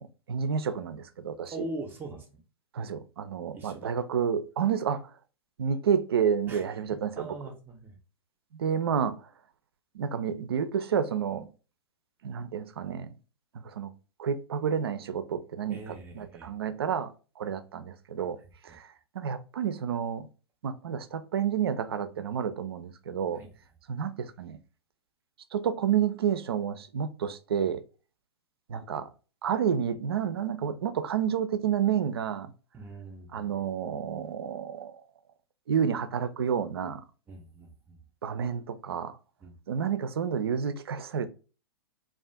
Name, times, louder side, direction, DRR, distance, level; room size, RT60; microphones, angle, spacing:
voice 1, 0.0-1.5 2.7-5.1 5.6-7.3 8.5-9.2 9.9-11.5 12.2-13.1 13.6-13.9 14.2-18.4 18.6-18.9 19.1-20.3 20.6-23.4 23.9-24.6 25.5-27.8 28.7-29.1 29.4-32.5 33.3-35.0 35.7-37.0 38.2-39.2 39.7-41.3, right 7 dB, 65° right, 0.4 m, -30 dB
voice 2, 1.5-2.3 3.5-4.0 6.5-8.0 15.7-16.5 18.7-18.8 23.3-23.5 32.7-33.5 37.3-38.0 39.4-39.6, right 2 dB, 15° right, 0.5 m, -42 dB
2.4 x 2.4 x 3.3 m
figure-of-eight pair, 105°, 14 cm